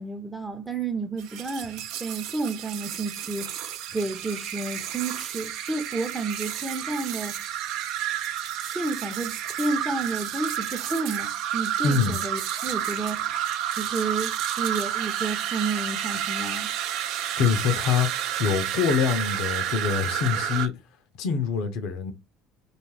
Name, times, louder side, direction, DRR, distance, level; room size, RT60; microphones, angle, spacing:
voice 1, 0.0-3.5 3.9-7.4 8.6-13.4 13.8-16.7, right 3 dB, 15° right, 0.6 m, -31 dB
sound 1, 1.2-20.7, right 10 dB, 60° right, 0.3 m, -30 dB
voice 2, 11.8-12.2 17.4-18.1 18.4-20.7 21.2-22.1, left 6 dB, 65° left, 0.4 m, -24 dB
2.5 x 2.3 x 3.1 m
hypercardioid pair, 60°, 0 cm